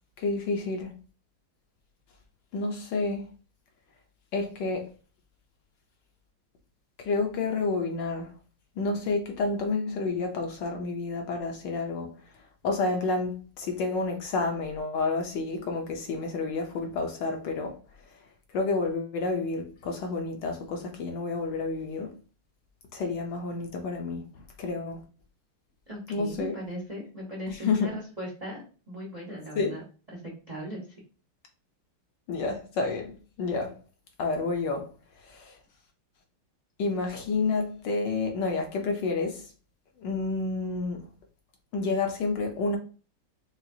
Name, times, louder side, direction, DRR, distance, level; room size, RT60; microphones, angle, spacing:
voice 1, 0.2-1.0 2.5-3.3 4.3-4.9 7.0-8.3 8.8-17.8 18.1-18.2 18.5-22.2 22.9-25.0 26.1-26.6 27.5-27.9 29.6-29.7 32.3-33.7 34.2-34.9 35.2-35.6 36.8-39.5 40.0-41.1 41.7-42.8, left 3 dB, 70° left, 1.1 m, -30 dB
voice 2, 25.9-29.8 30.1-31.0, equal, 60° right, 0.4 m, -38 dB
5.6 x 2.4 x 2.6 m
omnidirectional pair, 2.3 m